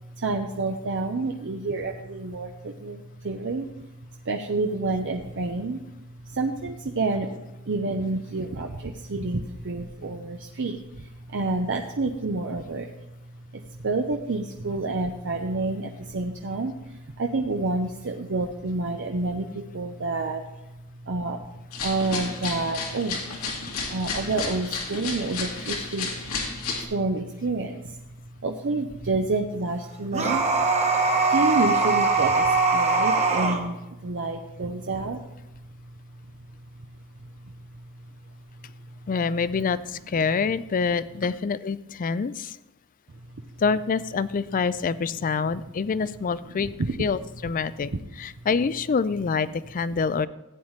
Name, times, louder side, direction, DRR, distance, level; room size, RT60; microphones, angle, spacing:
voice 1, 0.1-3.7 4.2-5.8 6.2-12.9 13.5-20.4 21.0-21.4 21.8-23.4 23.9-26.1 26.7-28.0 28.4-30.5 31.3-35.2 46.6-46.9, right 3 dB, 55° right, 3 dB, 0.7 m, -29 dB
sound 1, 21.7-26.8, left 4 dB, 80° left, 2.1 m, -32 dB
sound 2, 30.1-33.6, right 3 dB, 30° right, 1.2 m, -21 dB
voice 2, 39.1-42.6 43.6-50.3, left 5 dB, 40° left, 16 dB, 0.3 m, -26 dB
15.5 x 8.9 x 3.2 m, 0.95 s
head